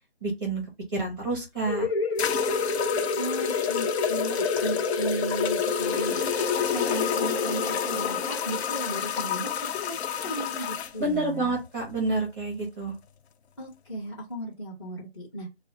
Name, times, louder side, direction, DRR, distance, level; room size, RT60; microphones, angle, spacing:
voice 1, 0.2-0.6 0.9-1.9 11.0-12.9, right 2 dB, 20° right, -1 dB, 0.6 m, -28 dB
sound 1, 1.4-1.5 2.2-10.9, left 9 dB, 85° left, 0.5 m, -31 dB
sound 2, 1.7-11.0, left 4 dB, 65° left, 1.0 m, -29 dB
voice 2, 3.1-11.6 13.6-15.5, right 1 dB, 25° left, -9 dB, 0.8 m, -36 dB
2.7 x 2.1 x 3.8 m, 0.23 s
hypercardioid pair, 180°, 31 cm